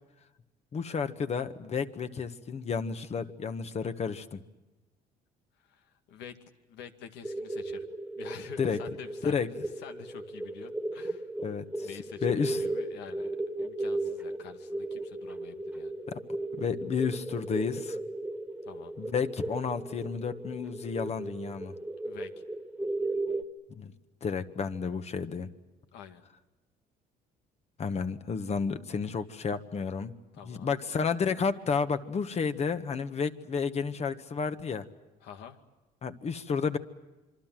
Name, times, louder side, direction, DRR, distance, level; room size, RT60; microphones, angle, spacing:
voice 1, 0.7-4.4 8.6-8.8 9.2-9.5 11.4-11.9 12.2-12.6 16.1-16.2 16.5-18.0 19.0-21.7 23.8-23.9 24.2-25.5 27.8-30.1 30.4-34.8 36.0-36.8, left 5 dB, 40° left, 10 dB, 1.6 m, -31 dB
voice 2, 5.6-6.4 6.7-7.8 8.2-11.3 11.8-13.3 13.6-16.0 18.6-18.9 22.0-22.4 25.9-26.2 30.3-30.7 35.2-35.6, left 8 dB, 85° left, 7 dB, 2.2 m, -48 dB
sound 1, 7.2-23.4, right 2 dB, 5° right, 1.9 m, -36 dB
27.0 x 24.5 x 7.6 m, 1.1 s
cardioid pair, 110°, 17 cm